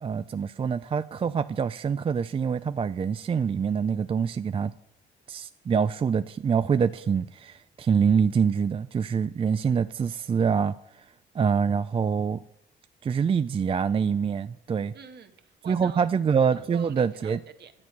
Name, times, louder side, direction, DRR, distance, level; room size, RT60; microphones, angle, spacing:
voice 1, 0.0-4.7 5.3-10.7 11.4-12.4 13.0-14.9 15.7-17.4, right 6 dB, 30° right, 12 dB, 0.3 m, -25 dB
voice 2, 14.9-16.1 16.5-17.7, right 7 dB, 55° right, 6 dB, 1.4 m, -47 dB
10.5 x 7.9 x 6.0 m, 0.79 s
cardioid pair, 90°, 20 cm